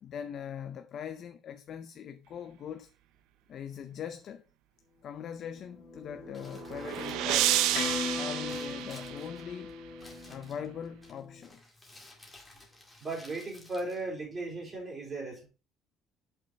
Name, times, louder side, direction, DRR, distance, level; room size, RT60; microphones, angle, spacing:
voice 1, 0.0-2.9 3.5-4.4 5.0-7.6 8.1-9.8 10.3-11.6, left 8 dB, 45° left, 0.5 m, -41 dB
sound 1, 5.5-11.5, left 4 dB, 80° left, 1.8 m, -40 dB
Crumpling crinkling, 6.2-14.8, left 2 dB, 10° left, 2.1 m, -55 dB
sound 2, 6.2-9.6, right 13 dB, 90° right, 0.5 m, -31 dB
voice 2, 13.0-15.5, right 2 dB, 20° right, 3.2 m, -36 dB
7.3 x 5.7 x 4.0 m
cardioid pair, 165°, 0 cm